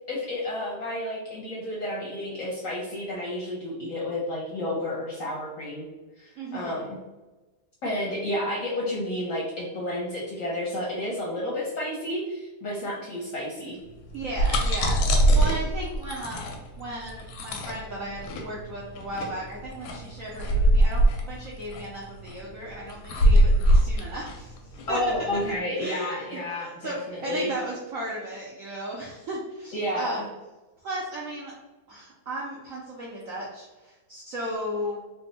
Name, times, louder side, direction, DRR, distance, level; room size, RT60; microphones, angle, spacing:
voice 1, 0.1-5.8 6.2-7.0 7.8-13.8 24.9-27.5 29.7-30.3, left 1 dB, 60° left, -4 dB, 0.9 m, -31 dB
voice 2, 6.4-6.9 14.1-16.5 16.8-24.6 24.9-25.0 25.8-30.2 30.8-31.5 31.9-35.0, right 1 dB, 70° right, -4 dB, 0.8 m, -35 dB
sound 1, 14.1-25.5, right 1 dB, 85° left, 1.4 m, -23 dB
3.5 x 2.1 x 4.0 m, 1.1 s
omnidirectional pair, 2.1 m